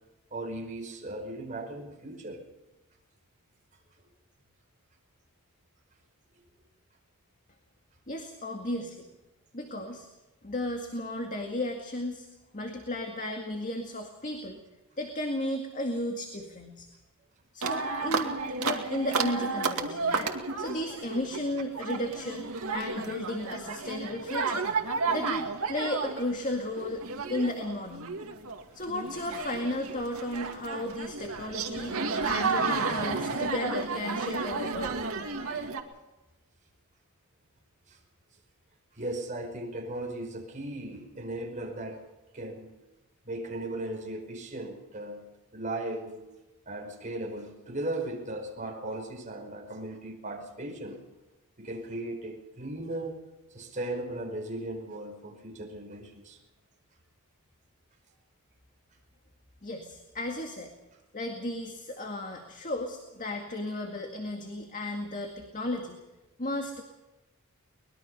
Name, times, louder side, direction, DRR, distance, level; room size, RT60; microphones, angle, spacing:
voice 1, 0.3-2.4 37.9-38.0 39.0-42.0 42.3-42.8 43.3-45.2 45.5-46.3 46.7-51.0 51.6-53.2 53.5-56.4, right 1 dB, 35° right, 1 dB, 5.3 m, -37 dB
voice 2, 8.1-9.1 9.5-10.1 10.4-12.3 12.5-14.6 15.0-16.9 17.5-20.3 20.6-24.7 25.1-27.0 27.3-28.2 28.7-35.0 59.6-60.7 61.1-66.0 66.4-66.8, left 1 dB, 35° left, 3 dB, 2.1 m, -34 dB
sound 1, 17.6-35.8, right 4 dB, 70° right, 2.2 m, -32 dB
23.5 x 21.0 x 5.6 m, 1.0 s
head